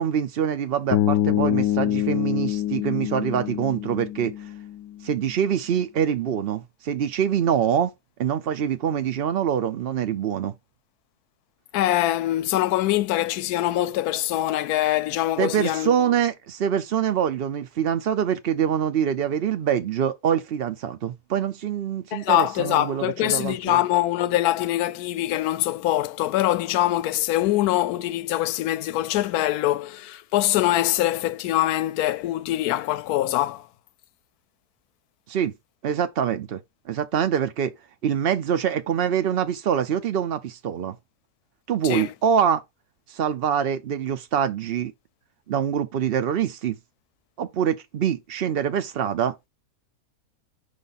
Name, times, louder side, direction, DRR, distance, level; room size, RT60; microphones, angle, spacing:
voice 1, 0.0-4.3 5.0-7.9 8.2-10.5 15.4-23.8 35.3-35.5 35.8-36.6 36.9-37.7 38.0-41.0 41.7-42.6 43.1-44.9 45.5-46.8 47.4-49.3, right 8 dB, 75° right, 0.5 m, -25 dB
Bass guitar, 0.9-5.0, left 13 dB, 90° left, 1.2 m, -25 dB
voice 2, 11.7-15.9 22.1-33.7 41.8-42.1, left 14 dB, 75° left, 1.0 m, -23 dB
5.2 x 5.0 x 4.0 m
omnidirectional pair, 1.8 m